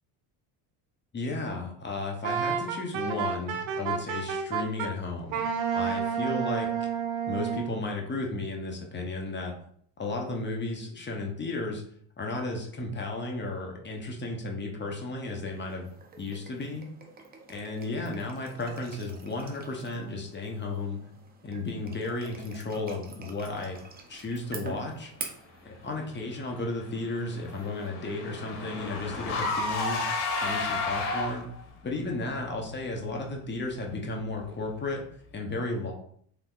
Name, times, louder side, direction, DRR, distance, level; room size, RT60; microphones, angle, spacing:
voice 1, 1.1-5.4 5.7-6.7 7.3-9.5 10.0-11.8 12.2-15.9 16.2-16.8 17.5-21.0 21.4-23.8 24.1-25.1 25.6-30.0 30.4-31.5 31.8-35.0 35.3-35.9, left 2 dB, 20° left, 1 dB, 0.7 m, -34 dB
Wind instrument woodwind instrument, 2.2-4.9 5.3-7.7, right 7 dB, 65° right, 0.7 m, -30 dB
sound 1, 15.2-27.9, right 4 dB, 20° right, 0.4 m, -47 dB
Car / Engine, 26.6-31.6, left 3 dB, 75° left, 0.8 m, -32 dB
3.4 x 2.7 x 2.4 m, 0.63 s
supercardioid pair, 90°, 50 cm